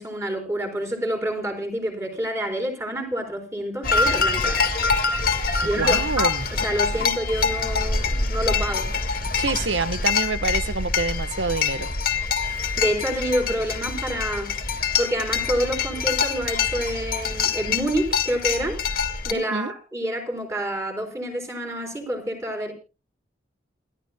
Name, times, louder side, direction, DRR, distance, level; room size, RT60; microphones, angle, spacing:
voice 1, 0.0-4.7 5.6-8.9 12.8-14.5 15.0-18.8 19.2-22.7, right 1 dB, 15° right, 4.2 m, -28 dB
sound 1, 3.8-19.3, left 5 dB, 50° left, 2.0 m, -25 dB
voice 2, 5.6-6.5 9.3-11.9 19.3-19.7, right 3 dB, 85° right, 1.1 m, -27 dB
28.5 x 12.5 x 2.2 m
head